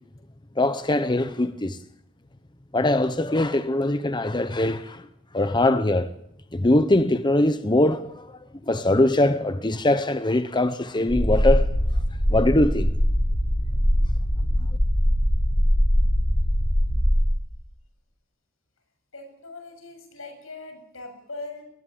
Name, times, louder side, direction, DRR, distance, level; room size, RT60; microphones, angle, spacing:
voice 1, 0.6-1.8 2.7-5.1 5.3-6.1 6.5-11.7 12.3-12.9, left 1 dB, 20° left, 0.9 m, -22 dB
sound 1, 11.1-17.2, equal, 50° left, 5.0 m, -21 dB
voice 2, 19.1-21.6, left 2 dB, 85° left, 7.4 m, -40 dB
22.0 x 19.0 x 8.6 m
head